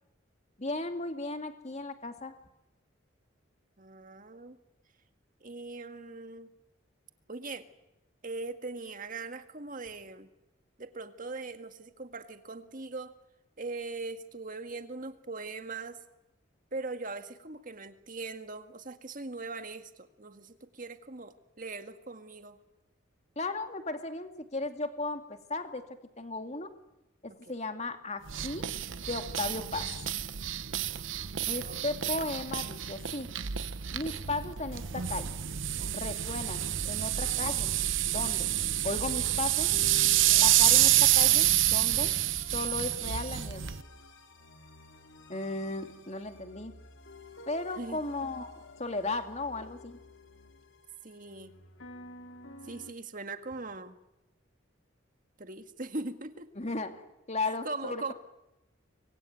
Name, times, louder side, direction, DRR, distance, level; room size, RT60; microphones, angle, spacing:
voice 1, 0.6-2.3 23.4-25.8 26.2-26.7 27.2-28.6 29.1-29.9 31.5-33.3 33.9-35.4 35.9-37.7 38.0-38.5 38.8-39.7 40.4-42.1 42.5-43.7 45.3-46.7 47.5-48.5 48.8-50.0 56.6-56.9 57.3-58.1, left 2 dB, 35° left, 7 dB, 2.3 m, -35 dB
voice 2, 3.8-4.6 5.4-6.5 7.3-7.7 8.2-10.3 10.8-13.2 13.6-16.0 16.7-22.6 27.5-27.6 31.4-31.9 47.8-48.0 51.0-51.5 52.6-54.0 55.4-56.5 57.6-58.1, right 3 dB, 40° right, 8 dB, 1.9 m, -40 dB
sound 1, 28.3-43.8, right 13 dB, 70° right, 0.9 m, -28 dB
sound 2, 39.7-52.9, left 2 dB, 70° left, 2.6 m, -51 dB
26.5 x 22.5 x 9.3 m, 0.93 s
head